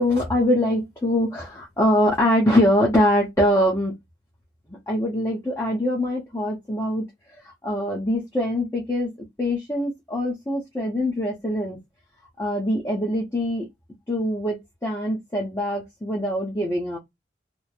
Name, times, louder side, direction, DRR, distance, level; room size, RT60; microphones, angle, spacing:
voice 1, 0.0-3.9 4.7-7.0 7.4-9.1 9.4-11.8 12.4-13.6 14.1-17.0, left 1 dB, 15° left, 0.7 m, -23 dB
2.9 x 2.1 x 2.3 m
head